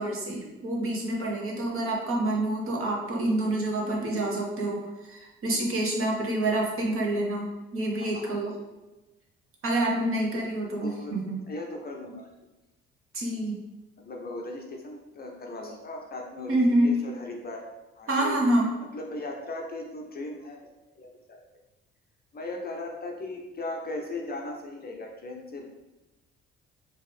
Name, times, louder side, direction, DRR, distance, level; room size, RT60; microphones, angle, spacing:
voice 1, 0.0-7.5 7.7-8.5 9.6-11.4 13.1-13.6 16.5-16.9 18.1-18.7, right 1 dB, 45° right, -2 dB, 1.1 m, -27 dB
voice 2, 7.9-8.3 10.8-11.1 11.5-12.3 14.0-17.7 18.0-18.4 18.9-20.7 21.0-21.4 22.3-25.7, left 2 dB, 30° left, 1 dB, 0.7 m, -38 dB
4.4 x 2.5 x 3.5 m, 1.0 s
figure-of-eight pair, 50°, 31 cm